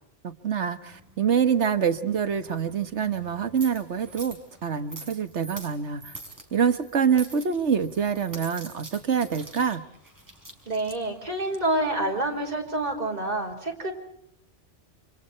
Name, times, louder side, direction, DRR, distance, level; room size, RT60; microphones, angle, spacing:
voice 1, 0.2-4.4 4.6-6.1 6.5-9.8, right 7 dB, 70° right, 9 dB, 1.7 m, -25 dB
sound 1, 0.9-12.9, right 2 dB, 15° right, 4.8 m, -46 dB
voice 2, 10.7-13.9, right 1 dB, 35° right, 1 dB, 4.8 m, -27 dB
29.5 x 26.5 x 4.4 m, 0.72 s
omnidirectional pair, 1.2 m